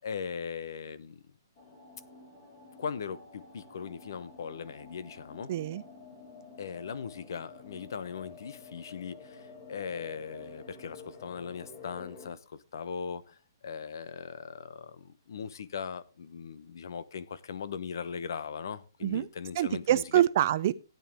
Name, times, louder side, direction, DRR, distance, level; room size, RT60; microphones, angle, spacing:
voice 1, 0.0-1.2 2.8-5.5 6.6-13.4 13.6-20.2, left 6 dB, 60° left, 1.0 m, -39 dB
sound 1, 1.6-12.3, left 4 dB, 30° left, 4.0 m, -50 dB
voice 2, 5.5-5.8 19.0-19.3 19.6-20.7, right 12 dB, 35° right, 0.6 m, -25 dB
15.5 x 9.3 x 3.6 m
hypercardioid pair, 170°, 2 cm